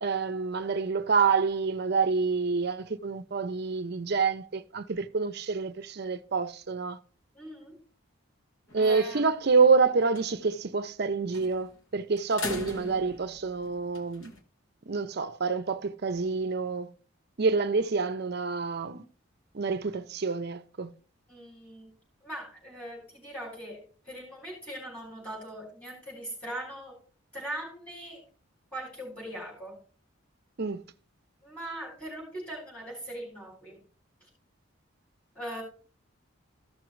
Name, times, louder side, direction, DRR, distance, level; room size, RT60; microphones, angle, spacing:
voice 1, 0.0-7.0 8.7-14.3 14.9-16.9 17.4-19.0 19.5-20.9 30.6-30.8, right 4 dB, 50° right, 0.5 m, -27 dB
voice 2, 7.3-7.8 8.7-9.3 21.3-21.9 22.2-27.0 27.3-28.2 28.7-29.8 31.4-33.8 35.3-35.6, right 1 dB, 5° left, 4.2 m, -40 dB
sound 1, 8.7-9.2 9.6-9.7 10.0-10.3 11.3-11.8 12.2-14.4, left 2 dB, 65° left, 1.3 m, -39 dB
14.5 x 6.1 x 3.1 m
head